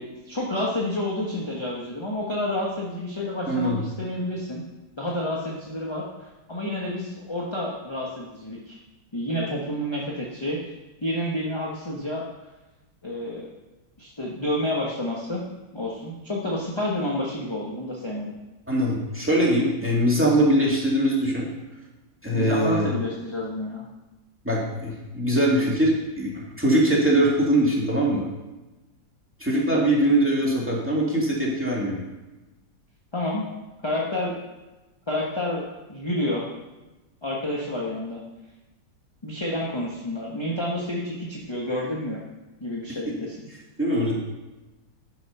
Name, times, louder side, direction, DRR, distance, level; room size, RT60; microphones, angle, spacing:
voice 1, 0.0-4.6 5.0-8.8 9.1-10.6 11.0-12.2 13.0-13.5 14.0-15.4 15.7-18.4 22.3-23.9 29.7-29.8 33.1-33.4 33.8-34.3 35.1-36.5 37.2-38.2 39.2-42.2 42.6-43.5, left 1 dB, 20° left, -3 dB, 1.1 m, -29 dB
voice 2, 3.5-3.8 18.7-21.5 22.2-22.9 24.4-25.9 26.2-28.2 29.4-32.0 43.8-44.1, right 1 dB, 5° right, -5 dB, 2.3 m, -22 dB
10.5 x 6.3 x 5.5 m, 1.1 s
omnidirectional pair, 2.0 m